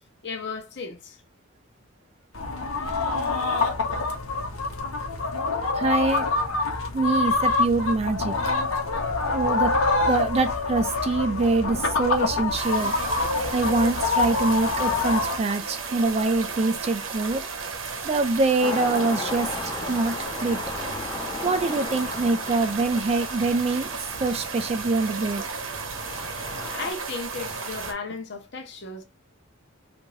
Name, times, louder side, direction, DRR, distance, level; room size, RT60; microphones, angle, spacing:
voice 1, 0.2-1.2 5.5-5.6 9.2-9.5 26.7-29.0, left 4 dB, 55° left, 0.7 m, -35 dB
sound 1, 2.3-15.4, left 3 dB, 80° left, 0.9 m, -26 dB
voice 2, 5.8-6.3 6.9-8.3 9.3-9.7 10.1-12.9 13.5-17.5 18.0-19.5 19.9-20.1 20.4-20.6 21.4-23.9 24.2-25.4, right 3 dB, 30° right, 0.4 m, -24 dB
sound 2, 12.5-27.9, right 5 dB, 70° right, 0.9 m, -34 dB
sound 3, 18.6-26.9, left 2 dB, 15° left, 0.6 m, -36 dB
3.5 x 2.6 x 3.1 m
head